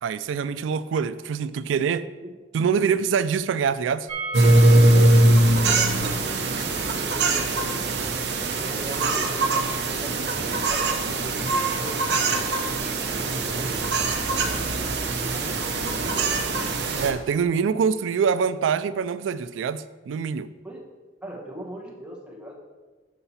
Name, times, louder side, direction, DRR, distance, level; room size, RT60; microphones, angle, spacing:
voice 1, 0.0-2.0 2.5-4.1 4.4-4.6 17.0-20.5, right 6 dB, 90° right, 14 dB, 0.3 m, -25 dB
sound 1, 4.1-9.9 10.1-10.2 10.5-10.6, right 2 dB, 25° right, 1.7 m, -39 dB
sound 2, 4.3-17.1, right 2 dB, 65° right, 0.8 m, -22 dB
voice 2, 4.7-5.2 5.6-6.8 7.1-7.6 8.2-10.2 10.7-12.5 12.9-14.5 15.2-16.4 20.6-20.8 21.2-22.6, right 1 dB, 5° right, -2 dB, 1.0 m, -40 dB
7.0 x 5.7 x 4.2 m, 1.3 s
head